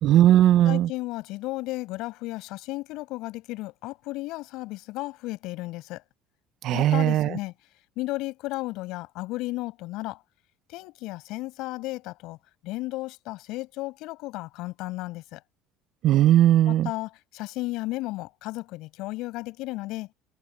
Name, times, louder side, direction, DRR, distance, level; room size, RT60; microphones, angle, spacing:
voice 1, 0.0-0.9 6.6-7.3 16.0-16.9, right 12 dB, 50° right, 0.4 m, -18 dB
voice 2, 0.6-6.0 6.7-7.5 8.0-10.2 10.7-12.4 12.6-15.4 16.6-20.1, left 19 dB, 65° left, 5.4 m, -34 dB
cardioid pair, 150°, 0 cm